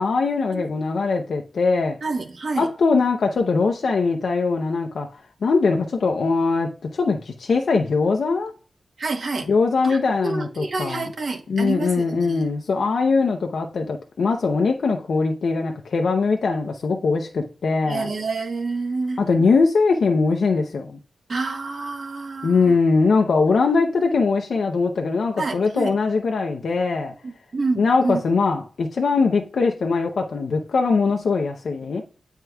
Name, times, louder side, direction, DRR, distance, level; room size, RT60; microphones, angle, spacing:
voice 1, 0.0-2.0 2.6-5.1 5.4-8.5 9.5-11.1 11.5-18.1 19.2-21.0 22.4-27.1 27.8-32.0, left 4 dB, 70° left, 0.6 m, -21 dB
voice 2, 2.0-2.7 9.0-9.5 9.8-12.4 17.9-19.2 21.3-22.8 25.4-25.9 27.2-28.2, right 3 dB, 55° right, 1.1 m, -28 dB
9.2 x 4.5 x 2.3 m
wide cardioid pair, 165°, 0 cm